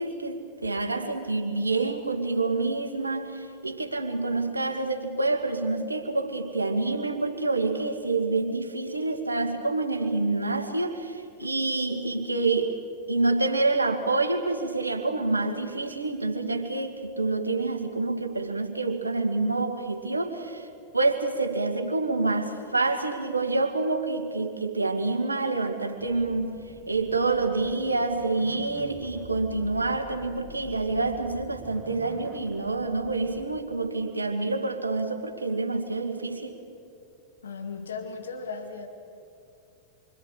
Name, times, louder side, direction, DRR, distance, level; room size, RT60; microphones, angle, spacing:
voice 1, 0.0-12.8 13.1-20.7 20.9-36.6, right 3 dB, 80° right, 5 dB, 2.2 m, -27 dB
sound 1, 26.0-33.6, right 3 dB, 15° right, 2.0 m, -47 dB
voice 2, 37.4-38.9, left 4 dB, 70° left, 5 dB, 2.1 m, -36 dB
27.5 x 25.5 x 6.6 m, 2.6 s
figure-of-eight pair, 90°, 0 cm